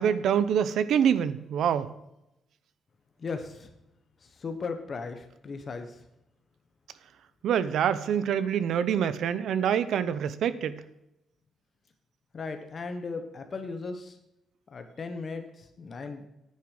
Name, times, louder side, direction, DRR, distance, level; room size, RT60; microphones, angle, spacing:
voice 1, 0.0-1.9 7.4-10.8, right 8 dB, 70° right, 15 dB, 0.7 m, -26 dB
voice 2, 3.2-3.7 4.2-6.0 12.3-14.2 14.7-16.3, left 4 dB, 35° left, 7 dB, 1.0 m, -37 dB
10.0 x 9.5 x 4.9 m, 0.88 s
cardioid pair, 155°, 0 cm